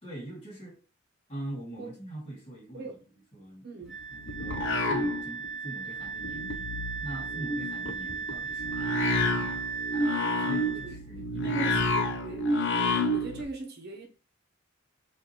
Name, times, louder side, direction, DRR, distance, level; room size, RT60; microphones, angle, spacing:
voice 1, 0.0-0.8 1.3-2.9 3.3-6.7 7.0-9.6 10.4-12.1, right 1 dB, 30° left, 2.2 m, -43 dB
sound 1, 3.9-5.7 6.0-13.4, left 1 dB, 65° left, 0.6 m, -30 dB
Wind instrument woodwind instrument, 3.9-10.9, right 5 dB, 5° right, 1.3 m, -37 dB
voice 2, 10.6-11.0 11.4-12.5 13.1-14.1, right 2 dB, 55° right, 0.9 m, -39 dB
6.2 x 2.6 x 2.9 m
head